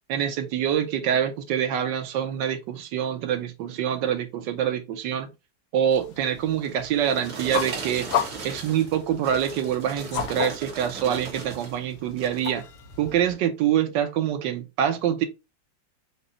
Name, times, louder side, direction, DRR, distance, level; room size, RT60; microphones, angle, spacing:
voice 1, 0.1-5.3 5.7-8.1 8.4-12.6 13.0-15.3, right 9 dB, 75° right, 1.3 m, -25 dB
sound 1, 5.9-13.3, left 8 dB, 65° left, 1.3 m, -35 dB
sound 2, 6.6-11.8 12.1-12.5 13.1-13.2, right 4 dB, 60° right, 1.7 m, -38 dB
5.2 x 2.1 x 4.1 m
omnidirectional pair, 2.0 m